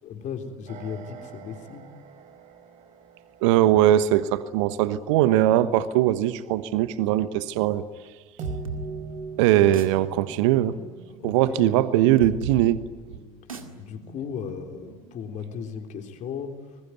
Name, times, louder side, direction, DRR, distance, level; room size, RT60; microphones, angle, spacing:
voice 1, 0.0-1.9 11.2-11.8 13.8-16.5, left 7 dB, 45° left, 5 dB, 3.7 m, -36 dB
sound 1, 0.7-5.0 8.4-12.3, right 5 dB, 45° right, 3.4 m, -43 dB
voice 2, 3.4-7.8 9.4-10.8 11.2-12.8, right 13 dB, 60° right, 15 dB, 1.2 m, -20 dB
sound 2, 8.4-15.8, right 3 dB, 80° right, 2.1 m, -40 dB
27.0 x 21.5 x 9.3 m, 1.5 s
figure-of-eight pair, 65°, 17 cm